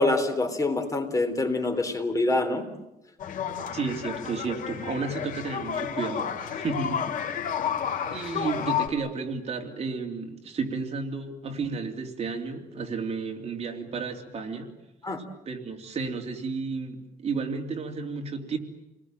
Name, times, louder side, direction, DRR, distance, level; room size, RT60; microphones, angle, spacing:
voice 1, 0.0-2.6 15.0-15.2, left 2 dB, 20° left, 7 dB, 3.4 m, -25 dB
sound 1, 3.2-8.9, left 8 dB, 65° left, 3.1 m, -31 dB
voice 2, 3.7-7.0 8.1-14.7 15.4-18.6, right 4 dB, 45° right, 3 dB, 3.3 m, -32 dB
29.5 x 20.5 x 9.0 m, 0.92 s
cardioid pair, 140°, 15 cm